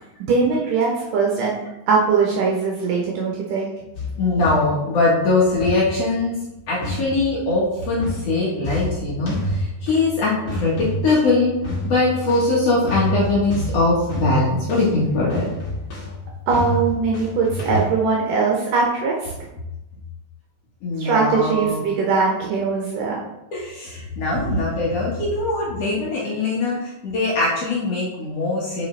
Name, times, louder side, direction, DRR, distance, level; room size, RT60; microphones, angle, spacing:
voice 1, 0.3-1.5 1.9-3.7 16.5-19.3 21.0-23.1, right 4 dB, 80° right, -2 dB, 1.9 m, -21 dB
sound 1, 3.9-5.0 5.6-6.2 6.8-7.6 8.0-17.8, left 1 dB, 45° left, 2.5 m, -29 dB
voice 2, 4.2-6.4 6.7-11.5 11.8-15.5 20.8-21.8 23.5-28.9, left 2 dB, 75° left, -6 dB, 1.4 m, -21 dB
7.6 x 4.9 x 3.2 m, 0.94 s
omnidirectional pair, 5.0 m